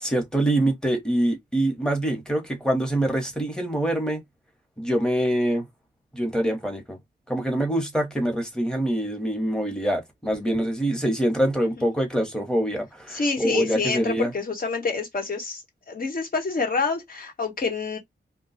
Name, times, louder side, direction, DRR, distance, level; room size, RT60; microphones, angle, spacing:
voice 1, 0.0-4.2 4.8-5.7 6.1-7.0 7.3-14.3, right 1 dB, 5° left, 1.0 m, -25 dB
voice 2, 13.1-18.0, left 4 dB, 50° left, 1.2 m, -27 dB
2.7 x 2.3 x 4.0 m
wide cardioid pair, 165°, 18 cm